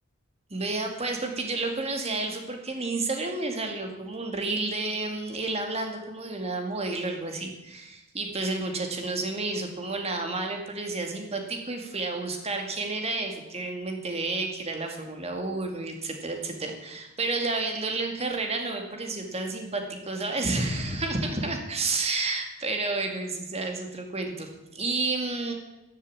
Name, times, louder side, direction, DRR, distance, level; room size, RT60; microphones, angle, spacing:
voice 1, 0.5-25.5, right 3 dB, 30° right, 3 dB, 2.2 m, -31 dB
14.0 x 7.4 x 8.5 m, 1.0 s
head